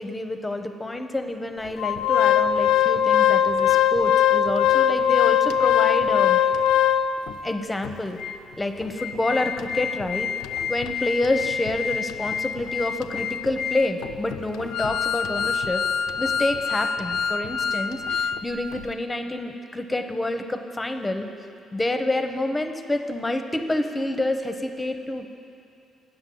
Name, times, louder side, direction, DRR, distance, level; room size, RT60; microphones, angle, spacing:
voice 1, 0.0-6.4 7.4-8.2 8.6-10.3 10.7-15.8 16.2-21.3 21.7-25.3, left 1 dB, 15° left, 7 dB, 0.7 m, -28 dB
Organ, 1.8-7.3 7.8-7.9 8.2-8.3 8.8-18.4 18.7-18.8, left 9 dB, 85° left, 0.3 m, -23 dB
8.7 x 6.0 x 7.7 m, 2.6 s
cardioid pair, 80°, 0 cm